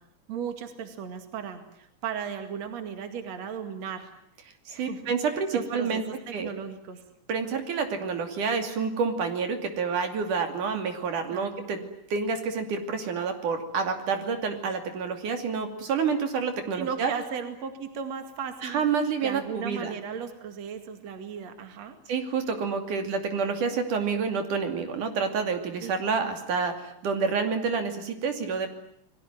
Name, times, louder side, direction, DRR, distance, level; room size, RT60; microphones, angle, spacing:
voice 1, 0.3-4.1 4.7-5.1 5.5-7.0 11.3-11.9 16.7-18.8 19.2-22.0 25.8-26.3, right 7 dB, 60° right, 7 dB, 3.3 m, -36 dB
voice 2, 4.7-6.0 6.3-6.5 7.3-11.8 12.1-17.1 18.6-20.0 22.1-28.7, right 5 dB, 80° right, 6 dB, 4.2 m, -28 dB
29.0 x 21.5 x 9.4 m, 0.73 s
omnidirectional pair, 3.5 m